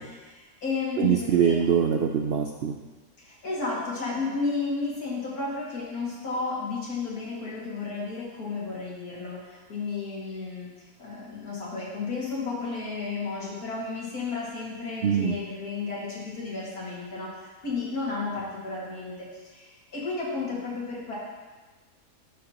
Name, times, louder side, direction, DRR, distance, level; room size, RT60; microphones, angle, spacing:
voice 1, 0.1-1.6 3.2-21.2, left 4 dB, 85° left, -6 dB, 2.7 m, -33 dB
voice 2, 1.0-2.8 15.0-15.4, right 8 dB, 75° right, 4 dB, 0.5 m, -23 dB
11.5 x 6.4 x 3.0 m, 1.3 s
omnidirectional pair, 1.6 m